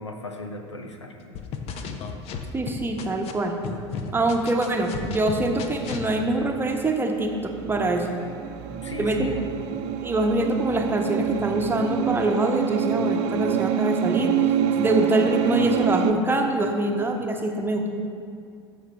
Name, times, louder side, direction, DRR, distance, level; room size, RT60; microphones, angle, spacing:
voice 1, 0.0-1.4 8.8-9.5, left 2 dB, 85° left, 4 dB, 0.8 m, -36 dB
sound 1, 1.3-3.3 3.6-6.1, left 6 dB, 45° left, 0.8 m, -33 dB
voice 2, 2.5-3.5 4.1-8.1 9.0-9.3 10.0-14.3 14.8-17.9, right 2 dB, 15° right, 3 dB, 1.0 m, -24 dB
sound 2, 5.7-16.1, right 8 dB, 45° right, 0.5 m, -27 dB
14.0 x 6.7 x 3.4 m, 2.4 s
figure-of-eight pair, 70°, 15 cm